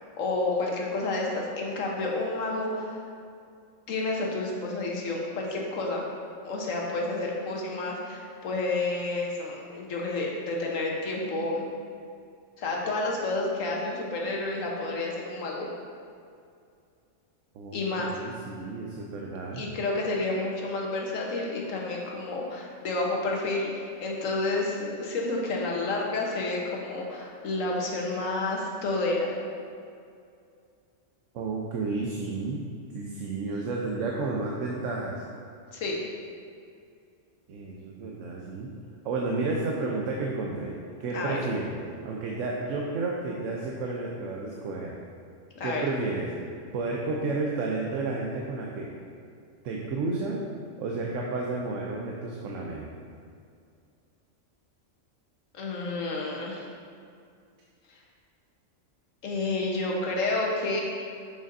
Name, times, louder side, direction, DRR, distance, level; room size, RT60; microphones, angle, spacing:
voice 1, 0.2-3.0 3.9-6.1 6.4-11.7 12.6-15.7 17.7-18.1 19.5-29.3 35.7-36.0 41.1-41.4 45.5-45.8 55.5-56.7 59.2-60.8, left 2 dB, 85° left, -2 dB, 1.4 m, -30 dB
voice 2, 17.5-19.6 31.3-32.6 32.9-35.2 37.5-38.7 39.0-44.9 45.6-46.3 46.7-48.9 49.6-50.4 50.8-52.9, right 3 dB, 80° right, -2 dB, 1.0 m, -31 dB
6.7 x 6.4 x 2.6 m, 2.4 s
omnidirectional pair, 1.3 m